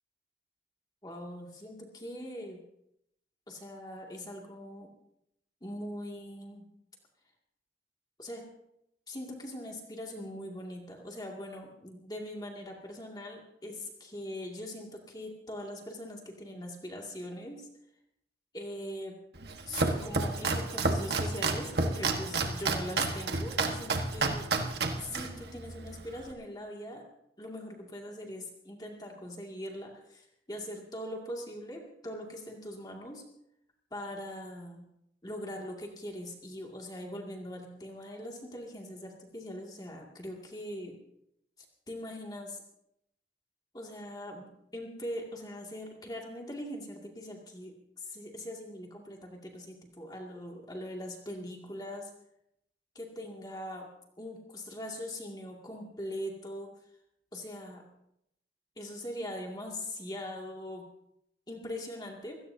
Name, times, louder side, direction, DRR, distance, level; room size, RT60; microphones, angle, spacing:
voice 1, 1.0-2.6 3.5-4.9 5.6-6.6 8.2-8.4 9.1-17.7 18.5-19.2 19.7-24.5 25.0-27.0 27.4-33.2 33.9-34.8 35.2-41.0 41.9-42.6 43.7-52.1 52.9-53.9 54.2-56.7 57.3-57.8 58.8-60.9 61.5-62.4, left 1 dB, 25° left, 0 dB, 2.3 m, -41 dB
Domestic sounds home sounds, 19.4-26.3, right 3 dB, 70° right, 1.4 m, -31 dB
23.5 x 17.0 x 2.8 m, 0.78 s
head